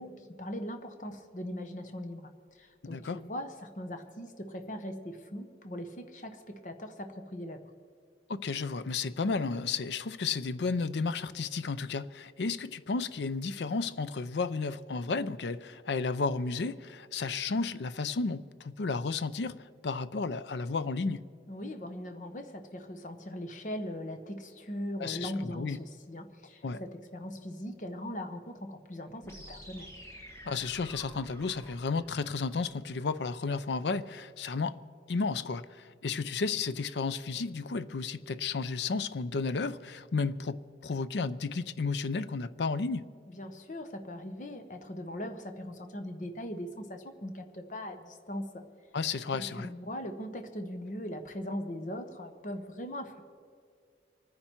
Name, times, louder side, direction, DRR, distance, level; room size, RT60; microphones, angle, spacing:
voice 1, 0.0-7.7 21.5-29.9 43.3-48.6 49.3-53.2, left 1 dB, 45° left, 1.0 m, -40 dB
voice 2, 2.8-3.2 8.3-21.2 25.0-25.8 26.6-26.8 30.5-34.8 35.1-43.1 48.9-49.7, left 4 dB, 80° left, 0.5 m, -33 dB
sound 1, 29.2-33.2, equal, 15° left, 1.6 m, -50 dB
26.0 x 10.0 x 4.5 m
head